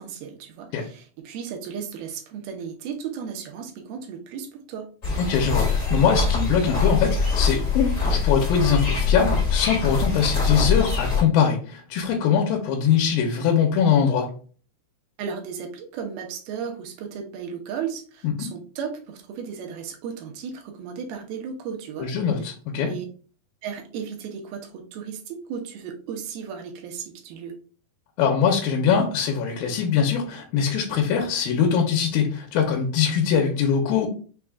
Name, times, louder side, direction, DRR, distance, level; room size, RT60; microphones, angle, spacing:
voice 1, 0.0-4.9 15.2-22.1 22.8-23.1 23.6-27.6, right 7 dB, 75° right, 4 dB, 2.6 m, -35 dB
sound 1, 5.0-11.2, left 4 dB, 45° left, 0.9 m, -23 dB
voice 2, 5.2-14.3 18.4-18.5 22.0-22.9 28.2-34.1, left 7 dB, 75° left, 2 dB, 2.4 m, -22 dB
6.3 x 2.3 x 3.4 m, 0.39 s
omnidirectional pair, 4.5 m